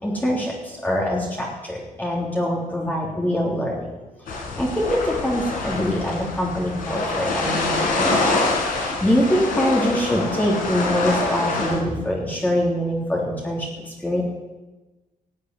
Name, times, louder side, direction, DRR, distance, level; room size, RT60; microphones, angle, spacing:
voice 1, 0.0-3.9 4.5-13.7 14.0-14.2, equal, 10° left, -3 dB, 3.4 m, -24 dB
sound 1, 4.3-11.8, left 2 dB, 70° left, 6.2 m, -25 dB
17.5 x 8.3 x 9.7 m, 1.1 s
cardioid pair, 115°, 14 cm